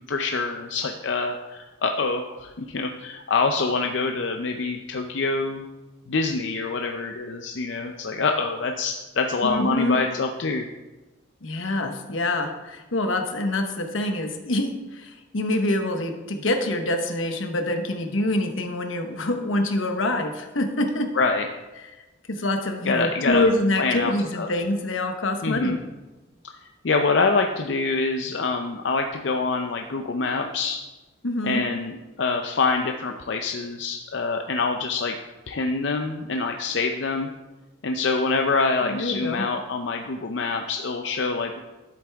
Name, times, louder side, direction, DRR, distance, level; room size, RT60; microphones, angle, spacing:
voice 1, 0.1-5.7 6.1-10.7 21.1-21.5 22.8-23.5 23.8-24.5 25.4-25.8 26.8-30.8 31.4-35.2 35.5-37.3 37.8-41.6, left 4 dB, 65° left, 4 dB, 0.6 m, -25 dB
voice 2, 9.4-10.0 11.4-21.1 22.3-25.8 31.2-31.6 38.8-39.4, left 1 dB, 90° left, 5 dB, 1.2 m, -25 dB
11.0 x 7.9 x 3.5 m, 1.1 s
head